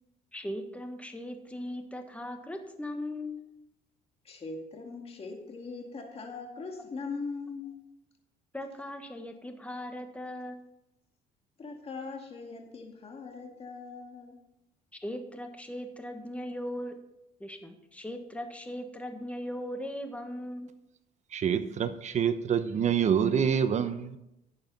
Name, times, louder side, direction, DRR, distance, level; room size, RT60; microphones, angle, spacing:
voice 1, 0.3-3.4 8.5-10.6 15.0-16.9 17.4-20.7, left 1 dB, 5° left, 5 dB, 1.5 m, -38 dB
voice 2, 4.2-7.8 11.6-14.3, left 4 dB, 35° left, 2 dB, 2.2 m, -40 dB
voice 3, 21.3-24.2, right 7 dB, 45° right, 10 dB, 1.0 m, -26 dB
11.5 x 7.1 x 5.5 m, 0.86 s
cardioid pair, 110°, 17 cm